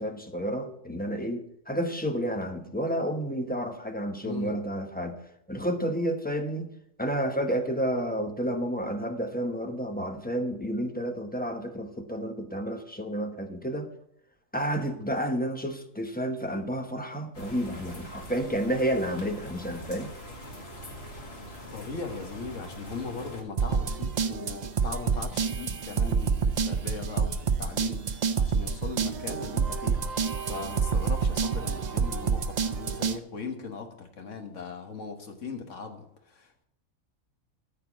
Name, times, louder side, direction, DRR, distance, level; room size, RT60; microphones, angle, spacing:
voice 1, 0.0-6.7 7.0-13.9 14.5-20.1, equal, 10° left, 5 dB, 0.9 m, -30 dB
voice 2, 4.2-4.6 21.7-30.0 30.4-36.6, left 4 dB, 65° left, 5 dB, 1.7 m, -39 dB
sound 1, 17.3-23.4, equal, 50° left, 2.3 m, -43 dB
sound 2, 23.6-33.2, right 5 dB, 45° right, 0.6 m, -28 dB
13.5 x 4.5 x 7.2 m, 0.76 s
omnidirectional pair, 1.4 m